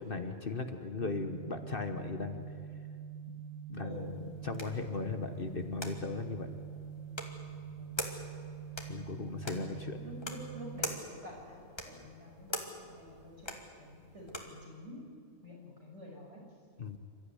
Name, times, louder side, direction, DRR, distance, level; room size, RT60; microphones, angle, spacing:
voice 1, 0.0-2.4 3.3-3.4 3.7-4.1 4.4-6.5 8.9-10.0 16.8-17.0, left 4 dB, 45° left, 7 dB, 1.2 m, -37 dB
sound 1, 0.9-10.9, right 7 dB, 65° left, 3.4 m, -45 dB
voice 2, 3.8-4.1 7.8-8.0 9.7-15.0 15.4-16.4, equal, 55° right, -2 dB, 6.8 m, -49 dB
sound 2, 3.9-14.6, left 1 dB, 20° left, 2.2 m, -45 dB
28.0 x 14.0 x 9.9 m, 2.2 s
omnidirectional pair, 1.4 m